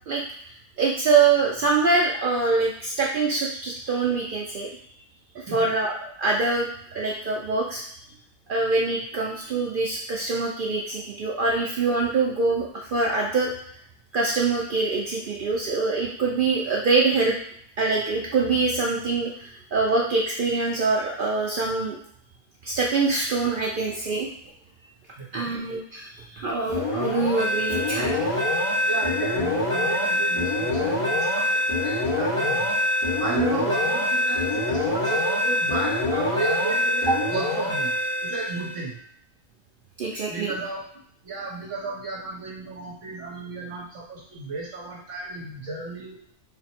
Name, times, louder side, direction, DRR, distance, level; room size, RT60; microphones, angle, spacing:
voice 1, 0.8-4.7 5.5-6.7 6.9-7.8 8.5-13.5 14.1-17.4 17.8-22.0 22.6-24.3 25.3-28.4 37.1-37.2 40.0-40.5, right 4 dB, 85° right, -2 dB, 0.4 m, -24 dB
voice 2, 5.4-5.7 25.2-25.5 28.8-32.7 33.2-39.0 40.3-40.8 41.2-46.2, right 3 dB, 65° right, -2 dB, 1.0 m, -33 dB
sound 1, 26.7-38.8, left 1 dB, 70° left, 1.9 m, -25 dB
4.0 x 2.0 x 4.3 m, 0.66 s
omnidirectional pair, 1.5 m